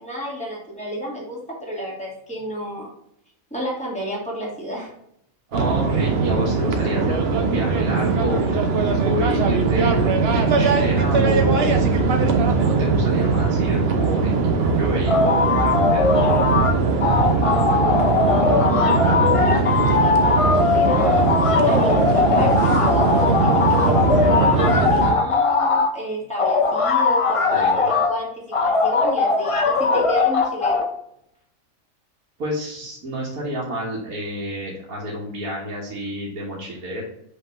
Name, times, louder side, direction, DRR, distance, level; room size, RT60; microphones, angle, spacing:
voice 1, 0.0-2.9 3.5-4.9 17.4-21.3 21.6-30.9, equal, 5° left, -4 dB, 2.2 m, -31 dB
sound 1, 5.5-25.1, right 4 dB, 50° right, 0.9 m, -20 dB
voice 2, 5.5-8.4 9.0-11.8 12.6-16.1 27.5-27.9 32.4-37.0, equal, 75° right, -5 dB, 1.9 m, -29 dB
sound 2, 15.1-16.7 17.0-25.9 26.4-28.1 28.5-30.8, left 4 dB, 40° left, 0.4 m, -19 dB
5.5 x 3.7 x 5.2 m, 0.74 s
omnidirectional pair, 1.5 m